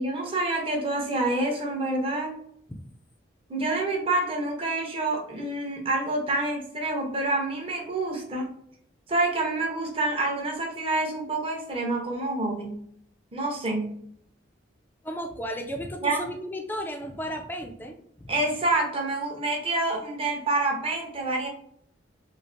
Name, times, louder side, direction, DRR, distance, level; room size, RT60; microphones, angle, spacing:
voice 1, 0.0-2.4 3.5-8.5 9.1-12.8 13.3-14.0 16.0-16.3 18.3-21.5, right 2 dB, 30° right, 0 dB, 0.6 m, -27 dB
voice 2, 15.0-18.3, equal, 10° left, 4 dB, 0.3 m, -34 dB
3.1 x 2.4 x 2.6 m, 0.69 s
head